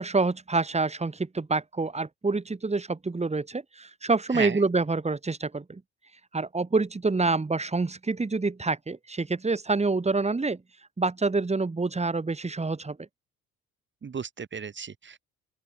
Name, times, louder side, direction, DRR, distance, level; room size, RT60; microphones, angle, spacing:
voice 1, 0.0-5.8 6.3-10.6 11.0-13.1, right 3 dB, 20° right, 4.9 m, -27 dB
voice 2, 4.3-4.6 14.0-15.3, right 6 dB, 35° right, 3.3 m, -34 dB
open air
supercardioid pair, 70°, 32 cm